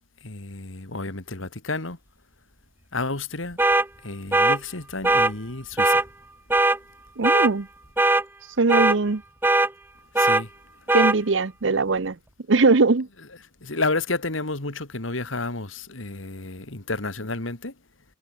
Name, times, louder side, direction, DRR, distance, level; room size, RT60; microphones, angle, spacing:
voice 1, 0.2-2.0 2.9-3.6 4.0-6.0 10.2-10.5 13.6-17.7, left 3 dB, 85° left, 2.7 m, -30 dB
sound 1, 3.6-3.9 4.3-4.6 5.0-5.3 5.8-6.0 6.5-6.8 7.2-7.5 8.0-8.2 8.7-9.0 9.4-9.7 10.2-10.4 10.9-11.2, right 2 dB, 10° right, 0.7 m, -19 dB
voice 2, 7.2-7.7 8.6-9.2 10.9-12.2 12.5-13.1, right 3 dB, 70° right, 0.8 m, -20 dB
head